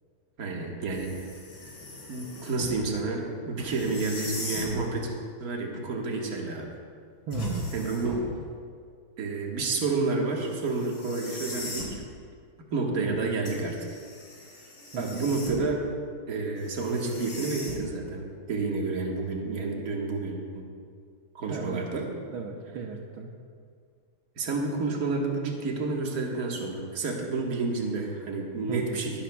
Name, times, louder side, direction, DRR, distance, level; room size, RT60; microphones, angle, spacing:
voice 1, 0.4-1.3 2.1-5.1 5.4-6.7 7.7-8.2 9.2-12.0 12.7-13.8 15.0-15.8 16.3-20.7 21.4-22.1 24.4-29.2, right 3 dB, 45° right, -1 dB, 1.8 m, -30 dB
sound 1, 0.9-2.8 3.6-4.8 7.3-8.4 10.6-12.0 13.5-15.8 16.6-18.1, left 1 dB, 70° left, 3.7 m, -39 dB
voice 2, 7.3-7.8 13.0-13.4 14.9-15.3 21.5-21.8 22.3-23.3 28.7-29.1, right 4 dB, 75° right, 1 dB, 1.7 m, -36 dB
19.5 x 12.0 x 2.3 m, 2.1 s
omnidirectional pair, 2.3 m